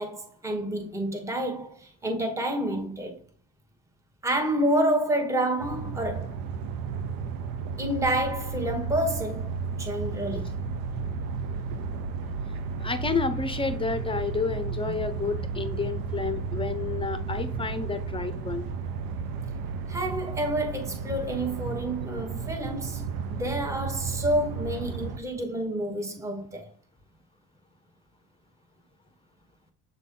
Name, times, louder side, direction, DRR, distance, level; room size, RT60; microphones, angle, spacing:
voice 1, 0.0-3.2 4.2-6.4 7.8-10.6 19.9-26.7, right 1 dB, 10° right, 1.1 m, -29 dB
sound 1, 5.6-25.2, right 5 dB, 90° right, 0.9 m, -33 dB
voice 2, 12.8-18.7, left 4 dB, 15° left, 0.6 m, -30 dB
7.4 x 4.1 x 3.7 m
cardioid pair, 135°, 34 cm